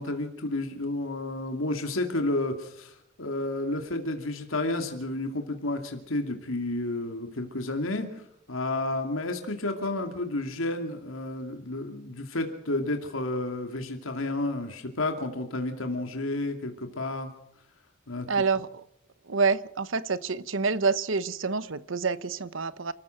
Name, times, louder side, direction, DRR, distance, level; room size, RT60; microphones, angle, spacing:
voice 1, 0.0-8.2 8.5-17.3 18.1-18.3, left 2 dB, 85° left, 2.6 m, -31 dB
voice 2, 18.3-18.7 19.3-22.9, right 4 dB, 75° right, 1.0 m, -27 dB
28.5 x 14.5 x 6.5 m
head